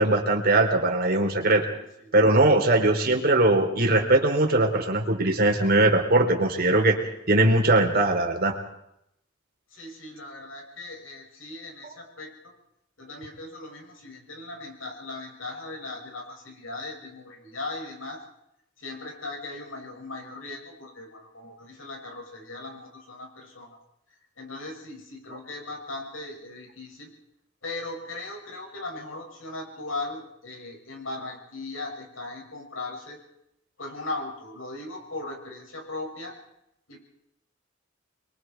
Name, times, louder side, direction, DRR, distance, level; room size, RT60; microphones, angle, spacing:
voice 1, 0.0-1.7 2.1-7.0 7.3-8.6, right 2 dB, 50° right, 3 dB, 3.8 m, -20 dB
voice 2, 1.7-2.7 9.7-12.5 13.0-18.2 18.8-23.8 24.4-27.1 27.6-33.2 33.8-36.3 36.9-37.0, left 2 dB, 85° left, 1 dB, 6.6 m, -38 dB
29.0 x 22.5 x 4.7 m, 0.79 s
head